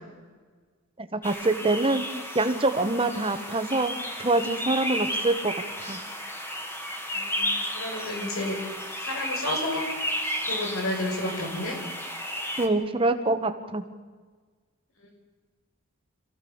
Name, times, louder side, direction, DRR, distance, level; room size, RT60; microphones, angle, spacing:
voice 1, 1.0-2.0 2.3-6.0 12.6-13.8, right 2 dB, 25° right, 8 dB, 1.4 m, -25 dB
sound 1, 1.2-12.7, equal, 10° left, 2.1 m, -33 dB
voice 2, 7.1-8.6 9.0-9.9 10.4-11.8, left 1 dB, 80° left, 1 dB, 5.8 m, -31 dB
27.0 x 15.5 x 7.2 m, 1.4 s
head